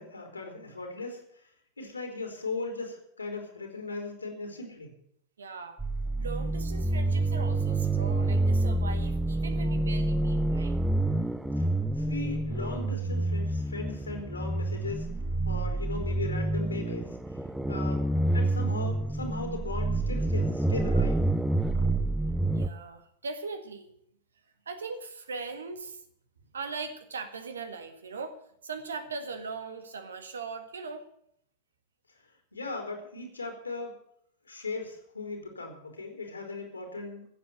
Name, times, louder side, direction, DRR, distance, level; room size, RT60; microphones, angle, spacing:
voice 1, 0.0-1.5 1.8-4.9 11.6-11.7 11.9-15.1 15.4-17.2 17.7-18.1 18.3-21.2 32.5-33.9 34.4-37.3, left 3 dB, 80° left, 4 dB, 3.6 m, -38 dB
voice 2, 5.4-5.8 6.2-10.8 22.5-23.9 24.7-26.0 26.5-28.4 28.6-31.1, right 4 dB, 70° right, 10 dB, 1.7 m, -39 dB
sound 1, 5.8-22.7, right 2 dB, 5° right, 0.7 m, -28 dB
15.5 x 7.8 x 8.9 m, 0.70 s
figure-of-eight pair, 90°, 0 cm